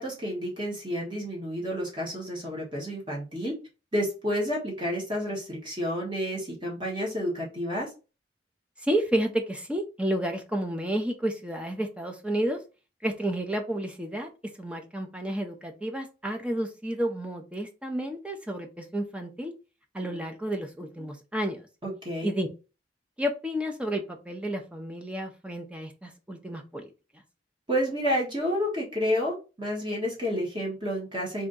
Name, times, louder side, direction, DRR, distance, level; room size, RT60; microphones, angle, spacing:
voice 1, 0.0-3.5 3.9-7.9 21.8-22.3 27.7-31.5, equal, 25° right, -3 dB, 1.3 m, -30 dB
voice 2, 8.8-12.6 13.0-14.3 14.6-19.5 19.9-21.7 22.2-22.5 23.2-26.9, right 1 dB, 5° right, 3 dB, 0.5 m, -31 dB
3.5 x 2.6 x 3.8 m, 0.31 s
head